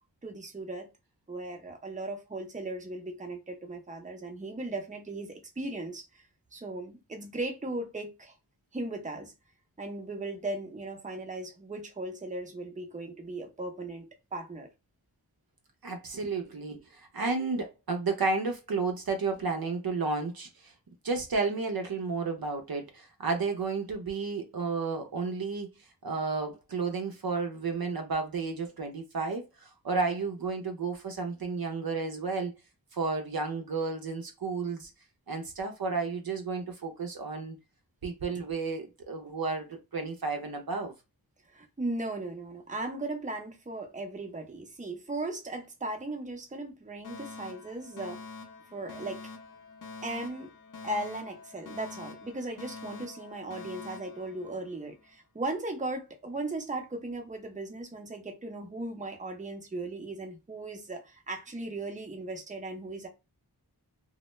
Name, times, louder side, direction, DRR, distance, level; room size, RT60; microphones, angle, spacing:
voice 1, 0.2-0.9 1.3-6.0 6.5-8.3 8.7-9.3 9.8-14.0 14.3-14.7 41.5-48.2 48.7-49.2 50.0-50.5 50.8-63.1, right 2 dB, 20° right, 0.6 m, -37 dB
voice 2, 15.8-20.7 21.0-32.5 32.9-34.9 35.3-37.6 38.0-40.9, right 4 dB, 60° right, 0.6 m, -32 dB
Alarm, 47.0-55.1, left 4 dB, 50° left, 0.7 m, -46 dB
2.1 x 2.1 x 3.0 m
wide cardioid pair, 50°, 41 cm